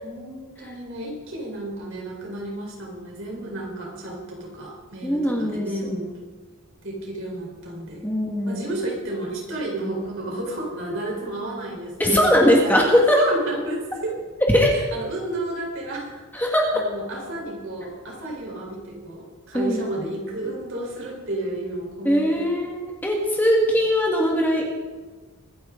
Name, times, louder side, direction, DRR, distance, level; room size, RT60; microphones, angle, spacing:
voice 1, 0.0-6.2 6.8-8.1 8.4-12.3 12.6-12.9 13.1-14.2 14.7-22.5, right 1 dB, 55° right, -2 dB, 4.4 m, -32 dB
voice 2, 5.0-6.0 8.0-8.7 12.0-13.2 14.5-14.8 16.3-16.8 19.5-19.8 22.0-24.7, equal, 10° left, -1 dB, 1.8 m, -20 dB
24.0 x 10.0 x 3.9 m, 1.4 s
head